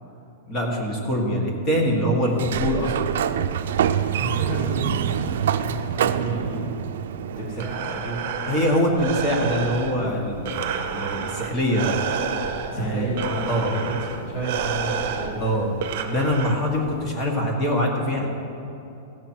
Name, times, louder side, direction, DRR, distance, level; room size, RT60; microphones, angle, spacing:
voice 1, 0.5-2.9 8.5-11.9 12.8-13.1 13.5-13.7 15.4-15.7 16.1-18.3, equal, 20° left, 0 dB, 1.6 m, -23 dB
Sliding door, 2.3-8.0, right 8 dB, 75° right, 0.5 m, -25 dB
voice 2, 4.1-5.2 5.6-6.7 7.4-8.2 12.7-15.6, right 1 dB, 35° left, -4 dB, 2.5 m, -31 dB
Breathing, 7.3-17.0, right 7 dB, 50° right, 0.9 m, -30 dB
15.5 x 7.1 x 4.5 m, 2.8 s
supercardioid pair, 170°, 0 cm